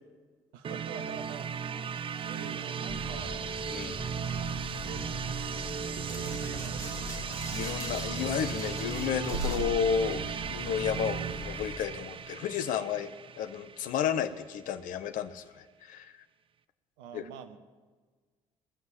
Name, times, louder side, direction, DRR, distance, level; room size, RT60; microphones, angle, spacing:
voice 1, 0.5-1.5 2.2-3.5 4.8-5.0 5.9-7.5 17.0-17.6, right 8 dB, 65° right, 10 dB, 1.0 m, -45 dB
sound 1, 0.6-14.4, right 7 dB, 30° right, 0.6 m, -36 dB
sound 2, 2.9-11.7, left 3 dB, 10° left, 2.2 m, -42 dB
sound 3, 5.8-11.0, right 1 dB, 90° left, 2.3 m, -41 dB
voice 2, 7.5-13.1 13.4-16.1 17.1-17.2, left 8 dB, 55° left, 11 dB, 0.8 m, -32 dB
19.5 x 7.6 x 7.7 m, 1.4 s
figure-of-eight pair, 50°, 17 cm